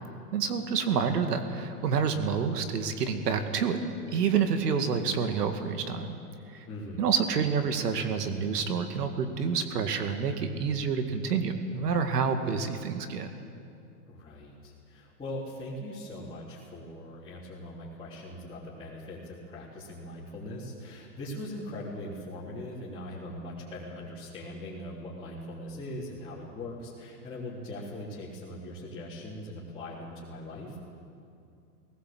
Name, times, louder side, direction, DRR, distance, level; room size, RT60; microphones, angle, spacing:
voice 1, 0.3-3.8 4.1-6.2 6.5-6.7 7.0-13.3, right 6 dB, 85° right, 7 dB, 2.1 m, -28 dB
voice 2, 6.7-7.0 14.1-30.8, left 1 dB, 10° left, -10 dB, 3.4 m, -41 dB
20.0 x 18.5 x 7.8 m, 2.4 s
hypercardioid pair, 145°, 46 cm